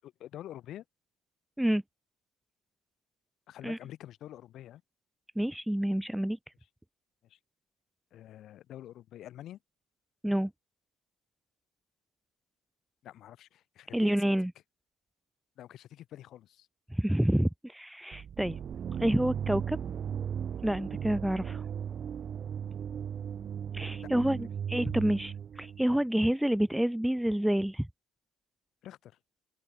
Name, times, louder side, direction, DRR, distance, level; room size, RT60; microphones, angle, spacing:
voice 1, 0.0-0.8 3.5-4.8 7.2-7.4 8.1-9.6 13.0-14.3 15.6-16.7 24.0-24.5 28.8-29.2, left 12 dB, 45° left, 5.5 m, -47 dB
voice 2, 5.4-6.4 10.2-10.5 13.9-14.5 16.9-18.6 19.0-19.8 20.6-21.7 23.7-27.9, right 1 dB, ahead, 0.4 m, -28 dB
sound 1, 18.1-26.0, right 8 dB, 30° right, 1.3 m, -36 dB
open air
cardioid pair, 170°, 0 cm